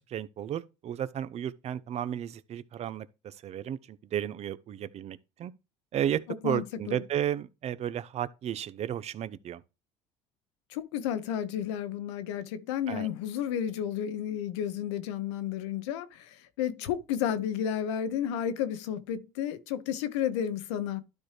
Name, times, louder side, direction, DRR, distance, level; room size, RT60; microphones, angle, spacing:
voice 1, 0.0-5.5 5.9-9.6 12.9-13.1, right 10 dB, 50° right, 0.7 m, -33 dB
voice 2, 6.3-7.0 10.7-21.0, left 9 dB, 85° left, 0.9 m, -32 dB
12.0 x 4.4 x 3.3 m
supercardioid pair, 85°, 14 cm